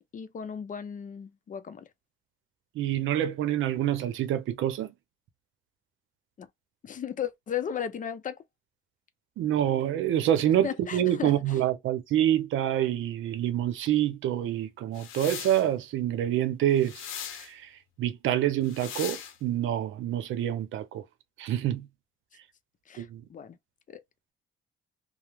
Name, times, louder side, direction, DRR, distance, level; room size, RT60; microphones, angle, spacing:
voice 1, 0.1-1.9 6.4-6.5 6.8-8.4 10.6-11.3 22.9-23.6 23.9-24.0, left 8 dB, 40° left, 0.5 m, -35 dB
voice 2, 2.8-4.9 9.4-17.1 17.4-17.7 18.0-21.0 21.4-21.9 23.0-23.2, right 11 dB, 80° right, 0.7 m, -27 dB
sound 1, 14.9-15.7 16.8-17.5 18.6-19.4, left 9 dB, 90° left, 0.7 m, -39 dB
2.8 x 2.0 x 3.3 m
cardioid pair, 90°, 20 cm